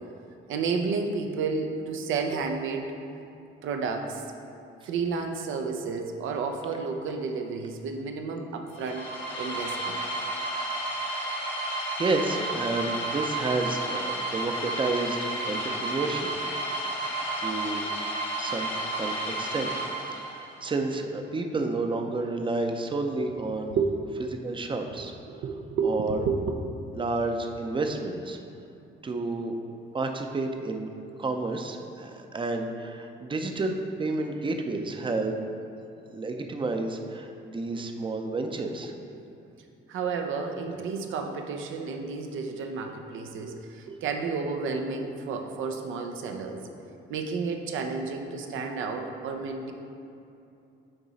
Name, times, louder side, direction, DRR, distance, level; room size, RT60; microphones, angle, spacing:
voice 1, 0.5-2.9 3.6-4.2 4.8-9.1 9.4-10.0 23.7-23.9 25.3-27.0 39.9-46.7 47.1-49.7, right 4 dB, 80° right, 4 dB, 0.6 m, -31 dB
sound 1, 8.7-20.6, right 1 dB, 90° left, 1.2 m, -32 dB
voice 2, 12.0-15.2 15.5-16.3 17.4-17.9 18.4-18.7 19.0-19.7 20.2-23.8 24.3-25.1 25.8-26.3 27.0-28.4 29.0-29.6 29.9-30.9 31.2-35.4 36.1-38.9, right 3 dB, 25° right, 4 dB, 0.6 m, -30 dB
8.7 x 3.0 x 4.0 m, 2.7 s
cardioid pair, 90°, 20 cm